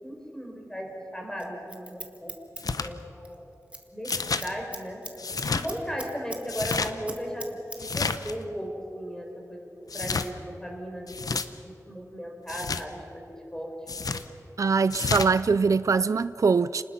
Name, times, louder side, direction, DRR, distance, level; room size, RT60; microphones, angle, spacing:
voice 1, 0.0-0.9 1.1-2.3 2.8-3.5 3.9-4.1 4.3-5.0 5.5-8.7 8.9-11.1 11.6-13.7, equal, 10° left, 5.2 m, -36 dB
Scissors, 1.4-3.4 3.6-3.8 4.1-6.4 6.7-7.8 8.1-8.2, right 1 dB, 20° right, 1.9 m, -40 dB
sound 1, 2.6-2.9 4.0-4.5 5.2-5.7 6.4-6.9 7.8-8.3 9.9-10.3 11.1-11.5 12.5-12.8 13.9-14.2 14.9-15.3, left 4 dB, 75° left, 0.9 m, -30 dB
voice 2, 14.6-16.8, right 5 dB, 60° right, 0.4 m, -23 dB
30.0 x 20.0 x 5.9 m
wide cardioid pair, 90°, 6 cm